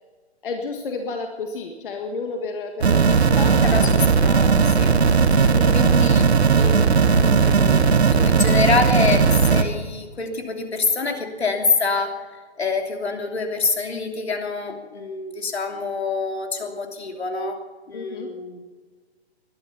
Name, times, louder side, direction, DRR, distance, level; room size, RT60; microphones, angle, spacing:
voice 1, 0.4-4.1 5.2-5.7 17.9-18.3, left 4 dB, 50° left, 4 dB, 1.8 m, -31 dB
sound 1, 2.8-9.6, right 5 dB, 75° right, 1.7 m, -17 dB
voice 2, 4.2-5.0 5.3-6.2 6.5-6.9 7.1-12.3 12.6-17.6 17.9-18.6, left 4 dB, 70° left, 3 dB, 3.0 m, -26 dB
21.0 x 12.0 x 5.8 m, 1.4 s
figure-of-eight pair, 135°, 33 cm